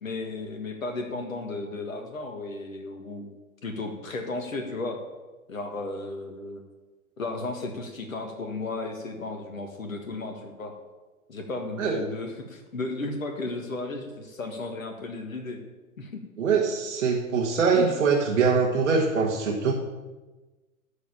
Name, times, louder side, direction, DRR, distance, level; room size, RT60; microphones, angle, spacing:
voice 1, 0.0-3.3 3.6-5.0 5.5-6.6 7.2-10.7 11.3-15.6 16.0-16.2, left 2 dB, 75° left, 4 dB, 1.8 m, -34 dB
voice 2, 16.4-19.7, right 5 dB, 65° right, -2 dB, 2.0 m, -23 dB
12.5 x 5.2 x 8.7 m, 1.2 s
figure-of-eight pair, 110°, 41 cm